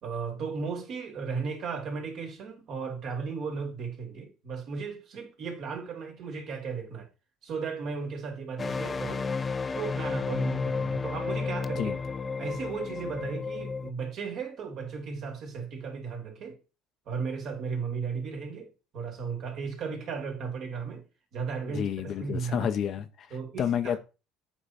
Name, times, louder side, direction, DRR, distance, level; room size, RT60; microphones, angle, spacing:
voice 1, 0.0-7.1 7.4-9.3 9.7-11.9 12.4-16.6 17.1-21.0 21.3-22.7 23.3-24.0, right 5 dB, 60° right, 2.8 m, -35 dB
sound 1, 8.6-13.9, left 4 dB, 30° left, 0.5 m, -32 dB
voice 2, 21.7-23.3 23.6-24.0, left 9 dB, 55° left, 0.9 m, -30 dB
8.2 x 4.4 x 4.2 m
hypercardioid pair, 70°, 0 cm